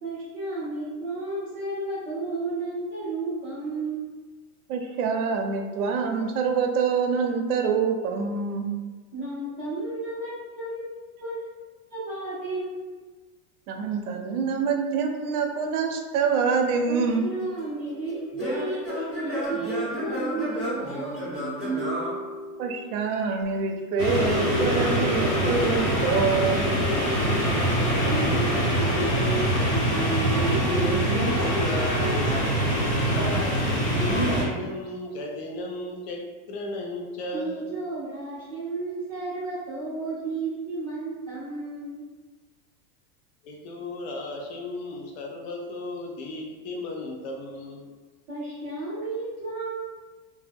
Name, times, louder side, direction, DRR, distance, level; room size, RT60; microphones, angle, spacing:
voice 1, 0.0-4.0 9.1-11.4 11.9-12.9 16.9-21.4 27.7-32.3 37.3-42.0 48.3-49.9, right 3 dB, 20° right, -10 dB, 0.3 m, -33 dB
voice 2, 4.7-8.7 13.7-17.2 22.6-27.2, right 5 dB, 75° right, 4 dB, 0.6 m, -26 dB
Singing / Plucked string instrument, 17.1-23.0, equal, 10° left, 1.0 m, -32 dB
sound 1, 24.0-34.4, equal, 70° left, 1.0 m, -24 dB
voice 3, 33.7-37.6 43.4-47.9, left 1 dB, 45° left, 0 dB, 0.4 m, -35 dB
2.1 x 2.1 x 3.3 m, 1.3 s
supercardioid pair, 160°, 45 cm